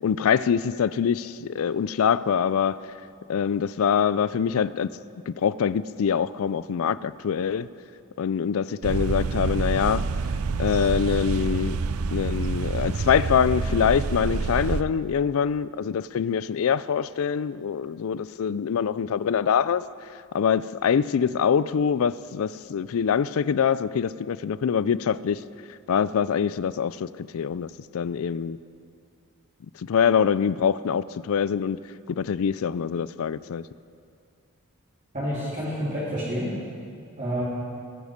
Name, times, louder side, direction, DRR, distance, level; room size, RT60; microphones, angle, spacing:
voice 1, 0.0-2.8 3.3-4.9 5.3-7.7 8.2-10.0 10.6-11.8 12.1-19.8 20.3-25.4 25.9-28.6 29.8-31.8 32.1-33.6, left 7 dB, 65° left, 0.4 m, -24 dB
sound 1, 8.8-14.8, right 4 dB, 75° right, 0.4 m, -27 dB
voice 2, 35.1-36.5 37.2-37.4, equal, 35° right, 2.9 m, -28 dB
19.5 x 9.5 x 5.1 m
head